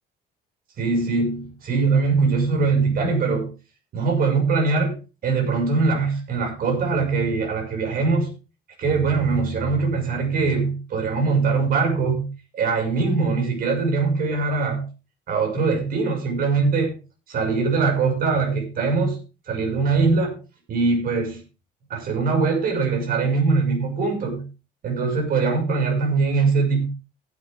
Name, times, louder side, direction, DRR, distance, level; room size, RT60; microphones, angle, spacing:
voice 1, 0.8-3.5 3.9-5.0 5.2-8.3 8.8-12.3 12.5-14.8 15.3-16.9 17.3-19.2 19.5-20.4 20.7-21.4 21.9-24.4 24.8-26.8, right 4 dB, 60° right, 3 dB, 6.2 m, -22 dB
15.0 x 9.6 x 3.7 m, 0.32 s
cardioid pair, 110°, 17 cm